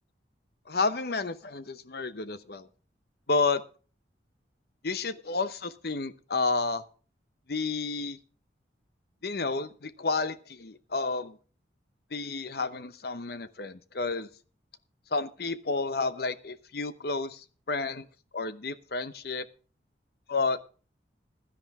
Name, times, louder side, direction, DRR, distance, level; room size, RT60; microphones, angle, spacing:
voice 1, 0.7-2.7 3.3-3.6 4.8-6.8 7.5-8.2 9.2-11.4 12.1-14.3 15.1-18.0 18.3-19.4 20.3-20.6, left 3 dB, 55° left, 13 dB, 0.8 m, -31 dB
16.0 x 11.5 x 3.6 m, 0.38 s
head